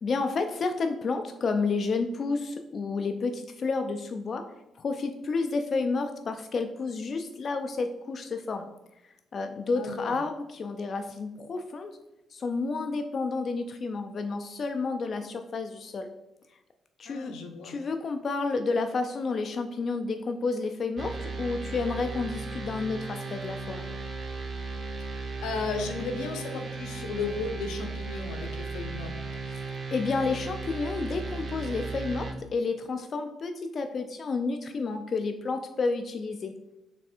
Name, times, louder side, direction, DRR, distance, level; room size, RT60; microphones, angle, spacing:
voice 1, 0.0-4.5 4.8-8.7 9.3-11.9 12.3-16.1 17.0-17.3 17.6-23.8 29.5-36.5, left 4 dB, 45° left, 6 dB, 0.3 m, -30 dB
voice 2, 9.8-10.2 17.1-17.7 25.4-29.1, left 4 dB, 90° left, 6 dB, 0.6 m, -34 dB
sound 1, 21.0-32.3, right 3 dB, 40° right, 0.8 m, -36 dB
3.4 x 3.2 x 4.2 m, 0.92 s
cardioid pair, 90°, 0 cm